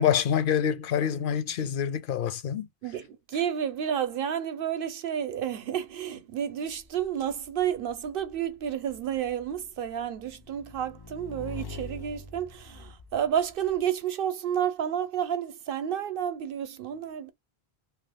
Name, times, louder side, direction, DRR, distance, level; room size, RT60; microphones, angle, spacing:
voice 1, 0.0-2.7, left 8 dB, 65° left, 0.7 m, -26 dB
voice 2, 2.8-17.3, right 9 dB, 65° right, 0.8 m, -31 dB
Motorcycle / Engine, 6.7-13.8, left 3 dB, 40° left, 0.3 m, -45 dB
2.7 x 2.3 x 3.4 m
omnidirectional pair, 1.0 m